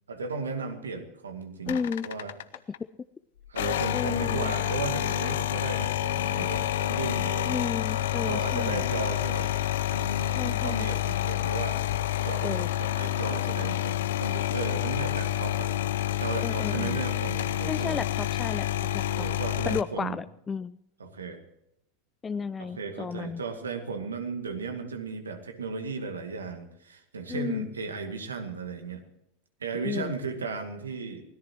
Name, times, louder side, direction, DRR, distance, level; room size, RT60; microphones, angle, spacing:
voice 1, 0.1-2.3 3.5-7.7 8.1-9.5 9.9-15.7 16.2-18.0 19.1-20.2 21.0-21.4 22.6-29.0 29.6-31.2, right 4 dB, 85° right, 6 dB, 2.2 m, -35 dB
sound 1, 1.7-2.8 3.5-19.8, left 13 dB, 70° left, 0.7 m, -28 dB
voice 2, 1.7-2.1 3.9-4.5 7.5-8.8 10.4-10.9 12.4-12.7 16.4-17.0 17.7-18.7 18.9-19.3 19.7-20.8 22.2-23.4 27.3-27.7 29.7-30.1, left 5 dB, 20° left, 14 dB, 0.5 m, -33 dB
24.5 x 17.0 x 3.0 m, 0.83 s
hypercardioid pair, 90°, 0 cm